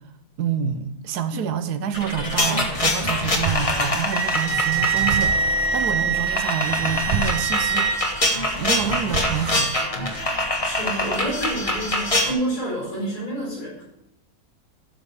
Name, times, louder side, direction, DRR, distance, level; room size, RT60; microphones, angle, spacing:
voice 1, 0.4-7.9 8.6-9.7, right 7 dB, 80° right, 10 dB, 1.3 m, -27 dB
sound 1, 1.9-12.3, left 1 dB, 25° left, 1.2 m, -25 dB
sound 2, 2.7-9.8, right 4 dB, 60° right, 0.4 m, -33 dB
Wind instrument woodwind instrument, 4.1-8.0, right 6 dB, 35° right, 1.9 m, -24 dB
voice 2, 10.6-13.9, right 1 dB, 80° left, -6 dB, 5.1 m, -29 dB
12.5 x 5.4 x 4.8 m, 0.83 s
omnidirectional pair, 1.7 m